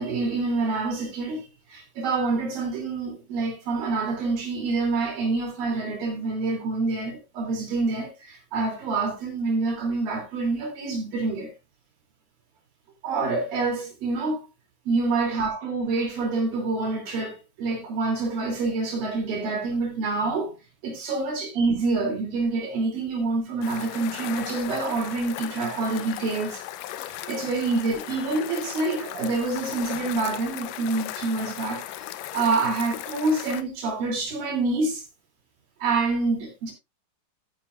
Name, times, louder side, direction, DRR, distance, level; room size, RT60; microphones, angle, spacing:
voice 1, 0.0-11.5 13.0-14.4 14.9-20.5 20.8-26.6 27.0-32.0 32.3-35.0 35.8-36.7, right 3 dB, 80° right, 4.6 m, -27 dB
sound 1, 23.6-33.6, left 13 dB, 80° left, 2.3 m, -37 dB
13.0 x 10.0 x 2.4 m
omnidirectional pair, 4.0 m